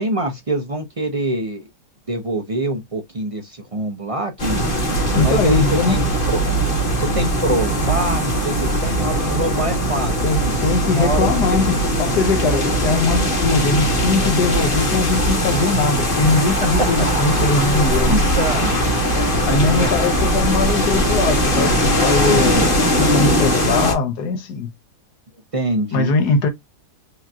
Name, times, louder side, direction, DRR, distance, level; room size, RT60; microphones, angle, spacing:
voice 1, 0.0-1.6 2.1-4.6 5.2-6.4 7.0-10.1 10.9-11.6 14.8-15.0 17.0-17.1 18.0-18.8 19.5-19.9 20.2-20.3 25.5-26.1, right 1 dB, 45° right, 0.4 m, -24 dB
sound 1, 4.4-23.9, equal, 30° left, 1.6 m, -19 dB
voice 2, 5.1-6.0 10.2-18.2 19.4-24.7 25.9-26.5, left 4 dB, 75° left, 1.6 m, -21 dB
4.9 x 2.9 x 2.3 m
omnidirectional pair, 1.8 m